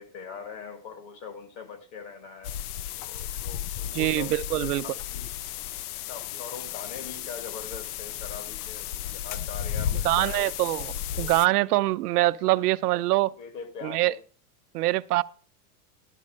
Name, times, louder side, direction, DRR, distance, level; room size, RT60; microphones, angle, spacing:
voice 1, 0.0-2.6 3.0-5.3 6.1-10.8 11.1-11.3 12.4-12.7 13.4-14.2, left 6 dB, 40° left, 1.6 m, -42 dB
sound 1, 2.4-11.5, left 10 dB, 75° left, 0.6 m, -34 dB
voice 2, 3.9-4.8 10.0-13.3 13.8-14.1 14.7-15.2, right 17 dB, 80° right, 0.6 m, -24 dB
12.0 x 4.3 x 7.4 m
supercardioid pair, 150°, 46 cm